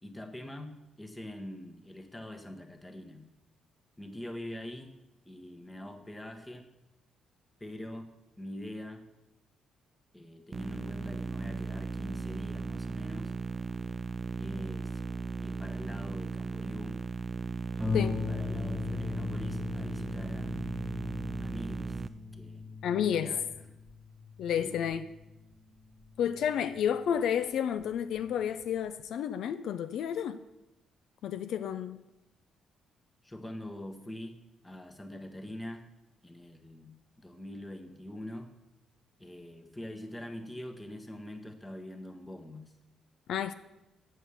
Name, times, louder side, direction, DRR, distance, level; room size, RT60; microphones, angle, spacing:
voice 1, 0.0-3.2 4.0-4.9 5.2-6.7 7.6-8.1 8.4-9.0 10.1-13.3 14.4-15.0 15.4-17.0 17.7-20.7 21.4-22.0 22.3-23.7 24.6-24.8 33.2-34.4 34.6-35.9 36.2-38.5 39.2-42.7, left 1 dB, 15° left, 1.3 m, -44 dB
sound 1, 10.5-22.1, right 4 dB, 30° right, 0.5 m, -37 dB
Harp, 17.8-27.0 27.8-27.9 28.4-28.5, left 5 dB, 5° right, 2.2 m, -39 dB
voice 2, 22.8-23.4 24.4-25.1 26.2-30.4 31.2-32.0 43.3-43.5, left 9 dB, 75° left, 0.4 m, -31 dB
7.9 x 6.4 x 7.0 m
cardioid pair, 90°, 0 cm